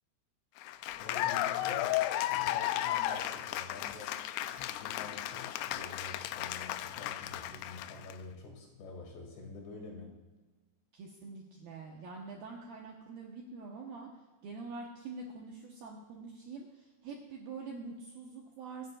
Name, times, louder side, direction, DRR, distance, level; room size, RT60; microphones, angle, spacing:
Cheering / Applause, 0.6-8.1, left 14 dB, 85° left, 2.8 m, -34 dB
voice 1, 0.9-10.2, left 3 dB, 65° left, 1 dB, 4.3 m, -48 dB
voice 2, 10.9-14.1 14.4-18.9, right 4 dB, 70° right, -1 dB, 2.3 m, -45 dB
24.5 x 10.5 x 2.4 m, 1.3 s
omnidirectional pair, 5.7 m